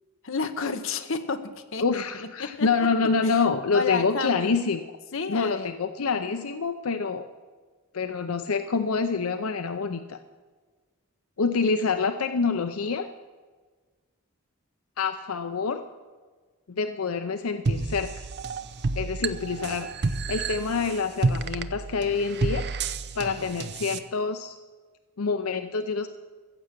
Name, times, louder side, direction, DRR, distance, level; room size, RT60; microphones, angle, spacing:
voice 1, 0.2-2.0 2.4-2.9 3.2-3.3 3.7-4.5 5.1-5.8 23.3-23.5, left 4 dB, 65° left, 8 dB, 1.0 m, -31 dB
voice 2, 1.8-4.8 5.3-7.3 7.9-10.2 11.4-13.1 15.0-15.8 16.7-18.2 19.0-22.7 23.2-24.5 25.2-26.1, left 4 dB, 90° left, 9 dB, 0.6 m, -27 dB
sound 1, 17.7-24.0, right 3 dB, 55° right, 0.7 m, -30 dB
15.0 x 7.6 x 8.2 m, 1.4 s
head